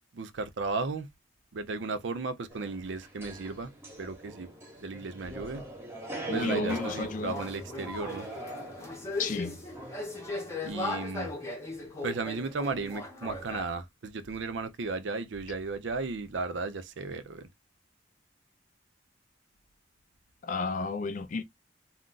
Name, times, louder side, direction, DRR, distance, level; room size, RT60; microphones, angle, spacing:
voice 1, 0.1-1.1 1.5-3.7 4.0-4.5 4.8-5.6 6.3-8.3 10.6-11.3 12.0-17.5, right 4 dB, 80° right, 0.5 m, -35 dB
sound 1, 2.5-10.7, right 1 dB, 15° right, 0.9 m, -42 dB
voice 2, 6.3-7.4 9.2-9.6 20.4-21.4, left 3 dB, 45° left, 0.4 m, -32 dB
sound 2, 6.7-13.6, left 2 dB, 15° left, 0.7 m, -38 dB
2.4 x 2.2 x 3.7 m
head